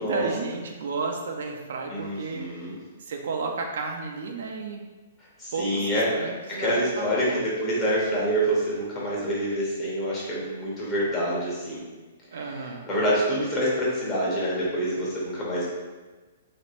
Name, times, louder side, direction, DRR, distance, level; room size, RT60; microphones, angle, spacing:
voice 1, 0.0-2.7 3.0-4.8 5.5-7.4 12.3-12.9, right 4 dB, 65° right, 2 dB, 0.4 m, -33 dB
voice 2, 1.9-2.8 5.4-6.1 6.5-11.8 12.9-15.7, equal, 25° left, -7 dB, 1.2 m, -26 dB
3.1 x 2.3 x 2.9 m, 1.3 s
hypercardioid pair, 120°, 0 cm